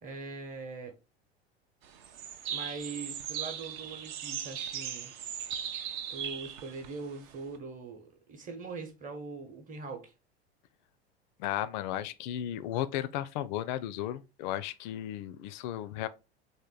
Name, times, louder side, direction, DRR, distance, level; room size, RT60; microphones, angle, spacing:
voice 1, 0.0-0.9 2.5-5.1 6.1-10.1, right 4 dB, 25° right, 1.0 m, -42 dB
sound 1, 1.8-7.6, right 9 dB, 45° right, 0.5 m, -38 dB
voice 2, 11.4-16.1, left 12 dB, 45° left, 0.4 m, -34 dB
3.6 x 2.6 x 3.8 m
figure-of-eight pair, 80°, 33 cm